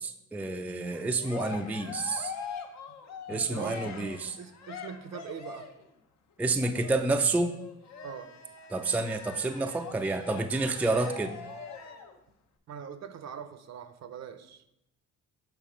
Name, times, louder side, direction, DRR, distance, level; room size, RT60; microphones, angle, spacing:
voice 1, 0.0-2.3 3.3-4.3 6.4-7.5 8.7-11.4, right 3 dB, 5° right, 6 dB, 0.4 m, -29 dB
Cheering, 0.8-5.8 6.6-12.2, left 5 dB, 65° left, 0.8 m, -43 dB
voice 2, 3.3-5.7 8.0-8.3 12.7-14.6, right 7 dB, 60° right, 10 dB, 0.7 m, -42 dB
7.0 x 3.2 x 5.0 m, 0.82 s
cardioid pair, 90°, 30 cm